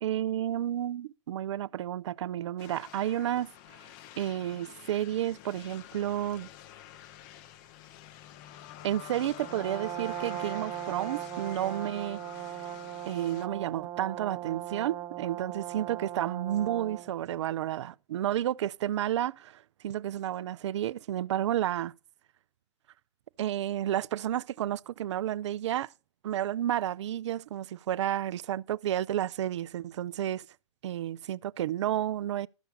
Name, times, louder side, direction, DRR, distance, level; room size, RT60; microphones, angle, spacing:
voice 1, 0.0-3.5 4.2-6.5 8.8-12.2 13.1-21.9 23.4-25.9 26.2-30.5 30.8-32.5, right 12 dB, 65° right, 0.6 m, -31 dB
sound 1, 2.6-13.5, left 11 dB, 40° left, 0.9 m, -48 dB
Brass instrument, 9.4-17.2, right 13 dB, 25° right, 0.8 m, -39 dB
13.5 x 5.7 x 7.1 m
hypercardioid pair, 125°, 16 cm